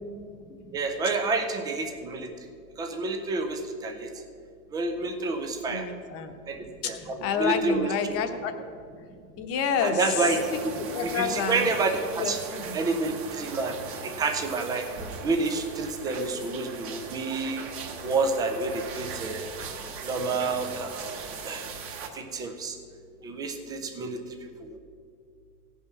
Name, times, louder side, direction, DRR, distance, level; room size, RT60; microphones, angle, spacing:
voice 1, 0.7-2.3 2.8-4.1 4.7-5.9 6.5-6.6 6.8-7.9 9.8-12.4 12.7-13.8 14.0-14.9 15.2-17.6 18.0-19.5 20.0-21.2 21.4-21.7 22.1-22.8 23.2-24.2 24.6-24.8, right 3 dB, 10° right, 5 dB, 0.4 m, -29 dB
voice 2, 5.7-6.3 6.8-8.6 9.4-10.0 10.9-11.7 12.2-12.7, left 7 dB, 30° left, 7 dB, 1.0 m, -29 dB
sound 1, 10.3-22.1, right 5 dB, 30° right, 1.1 m, -39 dB
16.0 x 5.7 x 5.9 m, 2.3 s
hypercardioid pair, 125°, 46 cm